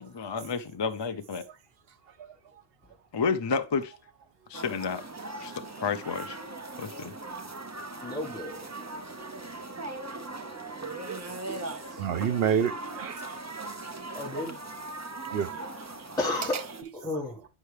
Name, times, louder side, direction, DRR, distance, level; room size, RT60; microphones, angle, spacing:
voice 1, 0.0-1.4 3.1-3.9 4.5-5.0 5.4-6.4 6.8-7.1, left 5 dB, 40° left, 0.4 m, -31 dB
sound 1, 4.5-16.8, right 2 dB, 20° right, 0.5 m, -39 dB
voice 2, 8.0-8.7 14.1-14.6 16.2-17.5, left 2 dB, 5° left, 1.2 m, -32 dB
voice 3, 11.5-13.4 15.3-15.5, right 8 dB, 70° right, 0.8 m, -29 dB
8.3 x 5.5 x 3.2 m
omnidirectional pair, 1.1 m